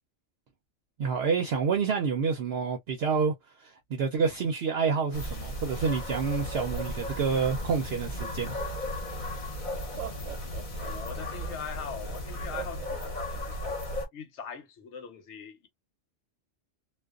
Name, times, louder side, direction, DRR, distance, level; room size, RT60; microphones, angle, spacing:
voice 1, 1.0-3.3 3.6-8.6, right 5 dB, 60° right, 0.7 m, -28 dB
sound 1, 5.1-14.1, left 1 dB, 40° left, 0.9 m, -35 dB
Laughter, 9.8-11.5 12.5-13.8, right 9 dB, 85° right, 1.0 m, -41 dB
voice 2, 10.9-13.8 14.1-15.7, left 6 dB, 70° left, 1.0 m, -41 dB
2.4 x 2.2 x 2.3 m
omnidirectional pair, 1.3 m